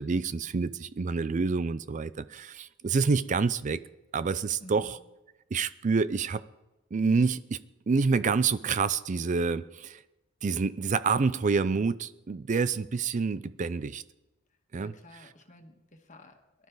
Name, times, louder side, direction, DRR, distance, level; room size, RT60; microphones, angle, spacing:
voice 1, 0.0-3.8 4.1-4.9 5.5-6.4 6.9-7.6 7.9-10.0 10.4-14.0 14.7-14.9, right 4 dB, 40° right, 15 dB, 0.4 m, -27 dB
voice 2, 4.6-4.9 14.8-16.7, left 1 dB, 40° left, 5 dB, 1.7 m, -52 dB
23.0 x 12.0 x 4.0 m, 1.0 s
head